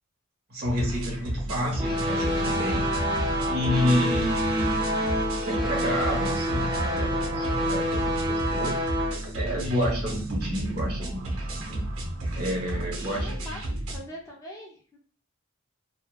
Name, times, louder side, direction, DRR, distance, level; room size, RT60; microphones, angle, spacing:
voice 1, 0.5-2.9 3.4-5.1 5.5-8.8 9.3-11.9 12.3-13.5, left 1 dB, 50° right, -3 dB, 1.4 m, -30 dB
sound 1, 0.6-14.0, right 1 dB, 75° right, 0.7 m, -32 dB
sound 2, 1.8-9.1, equal, 25° right, 0.7 m, -27 dB
voice 2, 13.1-13.6 13.9-15.0, equal, 15° left, -2 dB, 0.4 m, -42 dB
3.0 x 2.0 x 2.2 m, 0.42 s
head